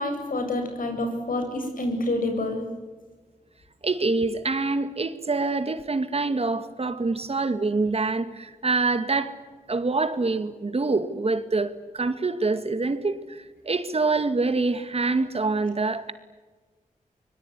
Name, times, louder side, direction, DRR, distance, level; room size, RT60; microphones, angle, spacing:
voice 1, 0.0-2.6, left 2 dB, 80° left, 7.7 m, -28 dB
voice 2, 3.8-9.3 9.7-16.1, right 3 dB, 45° right, 2.2 m, -25 dB
25.5 x 22.5 x 9.8 m
wide cardioid pair, 85°, 14 cm